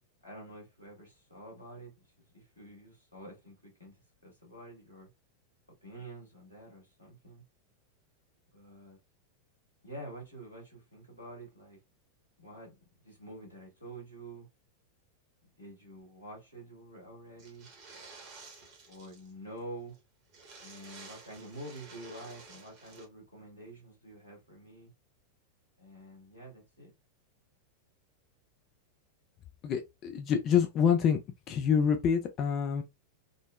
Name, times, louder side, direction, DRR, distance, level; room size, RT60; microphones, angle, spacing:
voice 1, 0.2-5.1 5.8-7.4 8.5-9.0 9.8-11.8 12.4-14.5 15.6-17.7 18.9-20.0 20.6-24.9 25.8-26.9, right 1 dB, 85° left, 1.6 m, -48 dB
sound 1, 17.4-19.3 19.6-19.7 19.9-20.0 20.3-23.0, right 4 dB, 45° right, 1.2 m, -52 dB
voice 2, 29.6-31.2 31.5-32.8, left 7 dB, 35° left, 0.4 m, -26 dB
3.8 x 2.0 x 2.2 m
figure-of-eight pair, 90°, 0 cm